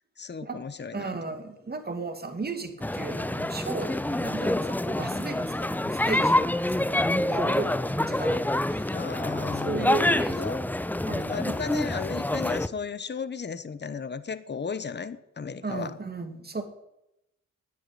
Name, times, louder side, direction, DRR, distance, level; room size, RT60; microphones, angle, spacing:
voice 1, 0.2-1.2 8.9-10.6 11.3-15.9, left 5 dB, 35° left, 14 dB, 1.0 m, -35 dB
voice 2, 0.9-9.0 9.3-10.6 11.1-11.5 15.6-16.6, right 3 dB, 30° right, 6 dB, 2.2 m, -35 dB
sound 1, 2.8-12.7, left 1 dB, 5° left, 0.5 m, -27 dB
9.9 x 8.8 x 9.8 m, 0.86 s
cardioid pair, 75°, 31 cm